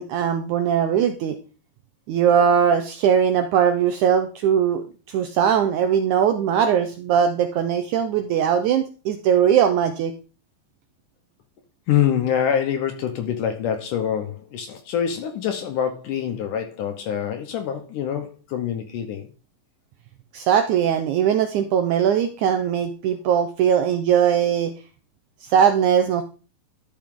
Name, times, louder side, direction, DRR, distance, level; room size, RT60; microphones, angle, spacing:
voice 1, 0.0-1.4 2.1-10.1 20.3-24.7 25.4-26.2, right 8 dB, 80° right, 1.7 m, -20 dB
voice 2, 11.9-19.3, left 9 dB, 70° left, 2.1 m, -25 dB
12.0 x 6.0 x 3.7 m
omnidirectional pair, 4.3 m